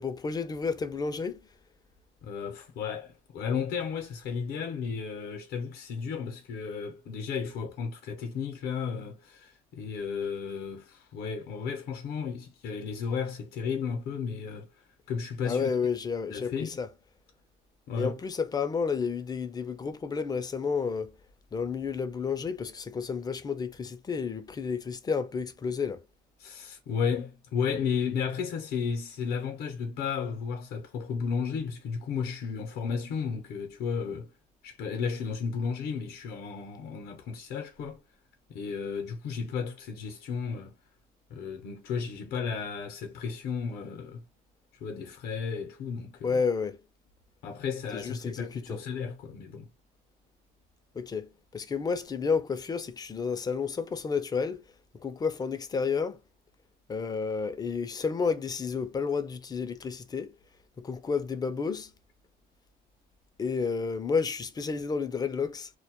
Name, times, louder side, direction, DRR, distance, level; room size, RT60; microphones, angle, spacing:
voice 1, 0.0-1.4 15.4-16.9 18.0-21.1 21.5-26.0 46.2-46.8 47.9-48.8 50.9-54.6 54.9-56.2 56.9-60.3 60.8-61.9 63.4-65.7, left 5 dB, 25° left, 0.4 m, -31 dB
voice 2, 2.2-15.7 16.3-16.8 17.9-18.1 26.4-34.3 34.6-38.0 38.5-40.8 41.3-44.2 44.7-46.4 47.4-49.7, left 6 dB, 65° left, 0.6 m, -33 dB
2.2 x 2.0 x 2.8 m
cardioid pair, 110°, 17 cm